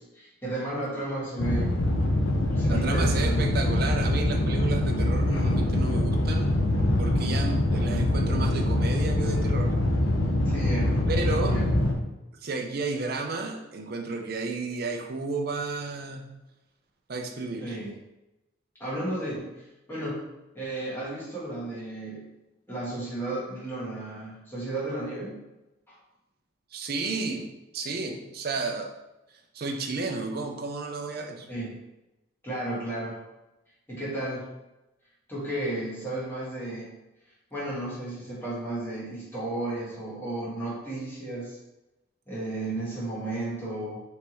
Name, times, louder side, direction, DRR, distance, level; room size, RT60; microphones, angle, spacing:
voice 1, 0.0-1.7 2.5-3.5 10.4-11.1 11.5-11.7 17.6-17.9 18.8-19.5 19.9-20.2 20.5-22.3 22.7-25.4 25.9-26.0 31.5-31.8 32.4-33.2 33.9-34.4 35.3-36.9 37.5-41.6 42.3-44.0, right 2 dB, 10° left, -8 dB, 1.5 m, -33 dB
sound 1, 1.4-11.9, left 1 dB, 85° left, 0.7 m, -24 dB
voice 2, 2.7-6.5 7.0-9.7 11.1-11.6 12.4-16.3 17.1-17.8 26.7-28.9 29.5-31.5, right 3 dB, 45° right, 3 dB, 0.5 m, -32 dB
4.6 x 3.4 x 3.0 m, 0.97 s
head